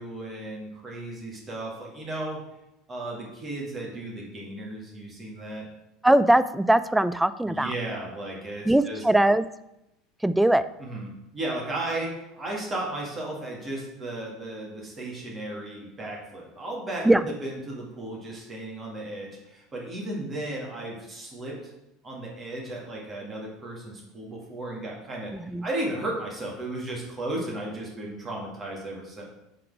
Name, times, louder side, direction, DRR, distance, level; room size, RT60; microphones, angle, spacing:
voice 1, 0.0-2.4 2.9-5.7 7.5-9.0 10.8-17.1 17.4-21.7 22.0-25.3 25.6-29.2, right 1 dB, 25° right, -3 dB, 2.0 m, -35 dB
voice 2, 6.0-7.7 8.6-9.4 10.2-10.7 17.0-17.3 25.3-25.7, right 1 dB, 5° right, 14 dB, 0.3 m, -21 dB
7.4 x 3.9 x 4.7 m, 0.89 s
figure-of-eight pair, 70°, 0 cm